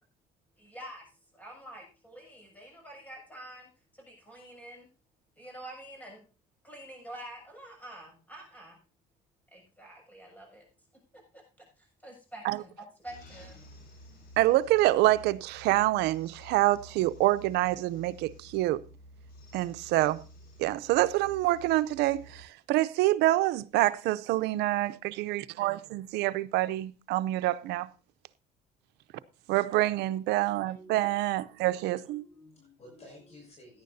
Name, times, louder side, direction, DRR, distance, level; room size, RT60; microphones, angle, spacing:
voice 1, 0.6-1.0 1.3-4.9 5.4-6.2 6.6-8.8 9.5-10.7 11.1-13.6, right 1 dB, 10° left, 6.6 m, -47 dB
sound 1, 13.1-22.4, equal, 65° left, 4.8 m, -52 dB
voice 2, 14.4-18.8 19.5-20.2 20.6-27.9 29.5-32.0, right 16 dB, 85° right, 0.6 m, -26 dB
voice 3, 30.6-31.1 31.9-33.8, equal, 40° left, 6.2 m, -53 dB
17.0 x 10.5 x 2.7 m
cardioid pair, 110°, 17 cm